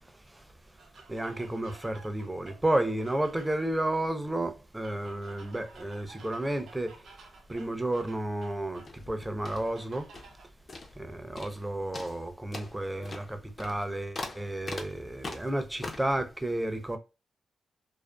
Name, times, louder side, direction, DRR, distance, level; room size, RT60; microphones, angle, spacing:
sound 1, 0.8-3.7 4.8-9.0 9.7-10.5, right 4 dB, 80° right, 0.6 m, -54 dB
voice 1, 1.1-6.9 7.5-10.1 11.0-17.0, right 1 dB, 15° right, 0.5 m, -32 dB
sound 2, 8.8-10.4 10.7-11.1 11.4-11.6 11.9-16.2, left 2 dB, 45° left, 0.6 m, -42 dB
2.5 x 2.3 x 2.2 m
cardioid pair, 60°, 0 cm